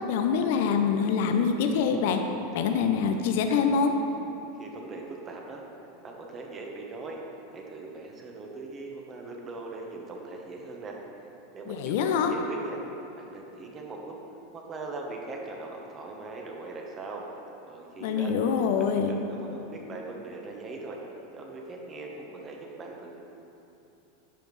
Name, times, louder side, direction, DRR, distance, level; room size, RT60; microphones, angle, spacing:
voice 1, 0.1-2.2 2.5-3.9 11.7-12.3 18.0-19.1, left 6 dB, 65° left, 5 dB, 0.5 m, -25 dB
voice 2, 4.5-5.6 6.0-7.2 7.5-11.0 11.5-12.8 13.1-14.2 14.5-17.2 17.7-18.3 18.8-21.0 21.3-23.1, right 3 dB, 30° right, 0 dB, 1.2 m, -40 dB
10.5 x 5.1 x 3.2 m, 2.9 s
hypercardioid pair, 90°, 0 cm